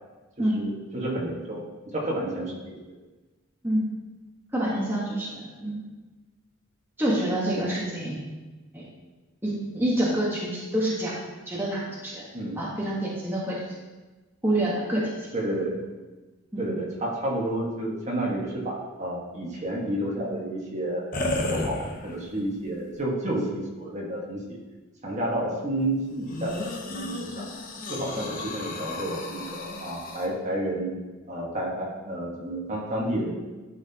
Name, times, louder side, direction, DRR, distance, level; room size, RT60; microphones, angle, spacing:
voice 1, 0.4-1.6 1.9-2.8 12.3-12.6 15.3-15.7 16.6-24.6 25.0-27.3 27.9-31.0 31.3-33.3, right 1 dB, 35° right, -3 dB, 1.6 m, -30 dB
voice 2, 4.5-5.9 7.0-8.2 8.7-8.8 9.4-11.2 11.5-12.2 12.6-13.6 14.4-15.0 16.5-16.6, right 1 dB, 10° right, -6 dB, 1.4 m, -27 dB
sound 1, 21.1-22.4 23.0-23.1 26.3-30.3, left 2 dB, 45° left, 0.9 m, -33 dB
12.0 x 5.8 x 2.9 m, 1.2 s
head